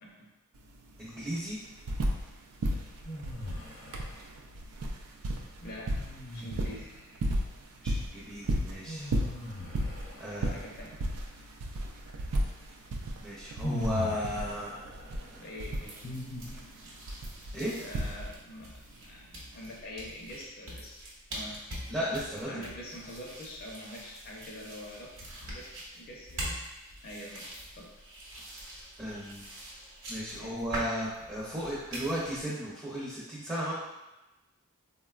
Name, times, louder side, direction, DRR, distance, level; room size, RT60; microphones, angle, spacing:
voice 1, 0.0-0.3 5.6-6.0 6.3-6.9 10.5-11.0 15.4-16.0 16.4-16.5 17.8-21.0 21.3-21.6 22.5-26.6 27.0-27.9 30.3-30.6, left 1 dB, 45° left, -3 dB, 0.5 m, -45 dB
sound 1, 0.5-0.6 0.9-2.3 2.6-18.6 19.6-19.7, right 1 dB, 85° right, 0.4 m, -34 dB
voice 2, 1.0-1.6 7.8-9.1 10.2-10.5 13.2-14.7 17.5-17.7 21.9-22.6 29.0-29.5 30.1-33.7, equal, 15° right, -9 dB, 0.5 m, -35 dB
sound 2, 3.0-4.2 6.0-7.1 8.9-10.8 12.7-12.8 13.6-16.9, left 1 dB, 75° left, 0.7 m, -40 dB
sound 3, 15.6-32.4, right 1 dB, 60° right, 0.8 m, -44 dB
3.7 x 2.1 x 2.3 m, 1.0 s
head